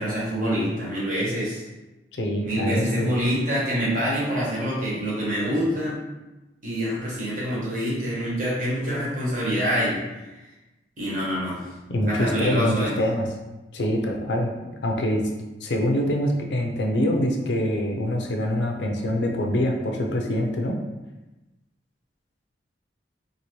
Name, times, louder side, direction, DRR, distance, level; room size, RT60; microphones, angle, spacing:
voice 1, 0.0-1.6 2.4-6.0 6.6-10.0 11.0-11.6 12.0-12.9, equal, 50° right, -7 dB, 1.1 m, -26 dB
voice 2, 2.1-3.1 11.9-13.2 13.7-14.5 14.8-15.3 15.6-20.8, equal, 80° left, 2 dB, 0.5 m, -24 dB
2.8 x 2.5 x 3.0 m, 1.1 s
head